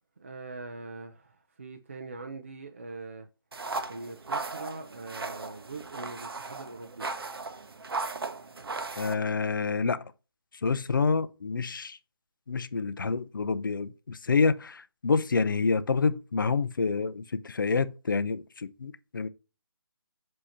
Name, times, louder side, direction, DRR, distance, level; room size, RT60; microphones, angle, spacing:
voice 1, 0.2-3.3 3.9-7.1, right 3 dB, 30° right, 0.5 m, -42 dB
sound 1, 3.5-9.1, right 3 dB, 70° right, 0.8 m, -37 dB
voice 2, 9.0-10.0 10.6-12.0 12.5-19.3, left 4 dB, 55° left, 0.5 m, -28 dB
7.7 x 2.8 x 4.9 m
hypercardioid pair, 175°, 13 cm